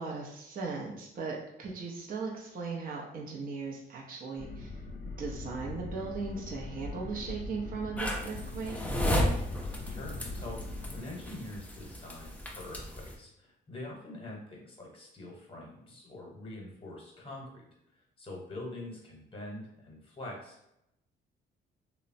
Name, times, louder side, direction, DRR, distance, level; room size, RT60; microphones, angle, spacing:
voice 1, 0.0-4.7 5.2-8.8, right 4 dB, 45° right, -2 dB, 0.5 m, -38 dB
sound 1, 4.4-11.0, left 3 dB, 50° left, 0.6 m, -41 dB
sound 2, 8.0-13.1, equal, 5° left, 0.4 m, -34 dB
voice 2, 9.9-17.6 18.2-20.6, left 1 dB, 25° left, -2 dB, 0.9 m, -44 dB
2.9 x 2.0 x 2.6 m, 0.81 s
cardioid pair, 90°, 20 cm